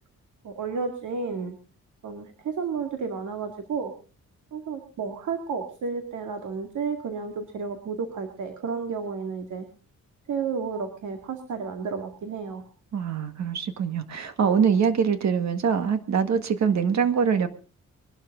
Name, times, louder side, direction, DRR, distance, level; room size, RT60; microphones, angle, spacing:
voice 1, 0.4-1.6 2.0-3.9 4.5-9.7 10.3-12.6, right 5 dB, 80° right, 5 dB, 2.2 m, -32 dB
voice 2, 12.9-17.5, right 6 dB, 65° right, 9 dB, 1.8 m, -23 dB
22.5 x 12.0 x 3.8 m, 0.37 s
wide cardioid pair, 125°, 30 cm